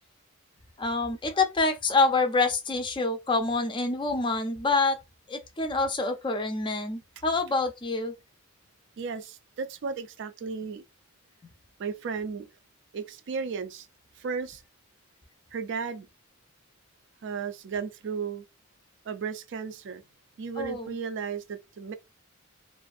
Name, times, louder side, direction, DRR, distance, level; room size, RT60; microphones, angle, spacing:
voice 1, 0.8-5.0 5.3-8.1 11.4-11.5 20.6-20.9, left 3 dB, 20° left, 0.4 m, -26 dB
voice 2, 9.0-10.8 11.8-12.5 12.9-13.9 14.2-14.6 15.5-16.1 17.2-18.4 19.1-20.0 20.4-21.9, right 5 dB, 60° right, 0.4 m, -34 dB
2.5 x 2.4 x 2.5 m
head